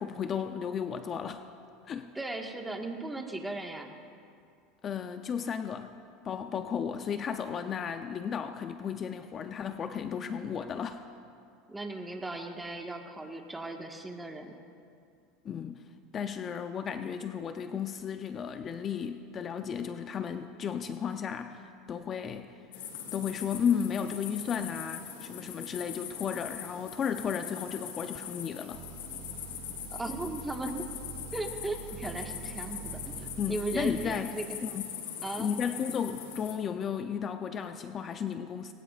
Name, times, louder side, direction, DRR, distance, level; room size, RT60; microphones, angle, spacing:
voice 1, 0.0-1.4 1.9-2.1 4.8-5.9 6.2-11.0 15.4-15.8 16.1-21.6 21.9-22.5 23.1-28.8 33.4-34.3 34.6-34.9 35.4-38.7, left 7 dB, 35° left, 8 dB, 0.6 m, -34 dB
voice 2, 2.1-3.9 11.7-14.5 29.9-30.9 31.3-34.6 35.2-35.5, right 2 dB, 10° right, 2 dB, 1.6 m, -37 dB
sound 1, 22.7-36.6, left 8 dB, 85° left, 2.1 m, -42 dB
sound 2, 28.7-34.2, right 8 dB, 45° right, 2.1 m, -45 dB
21.0 x 18.5 x 2.5 m, 2.4 s
supercardioid pair, 105°, 0 cm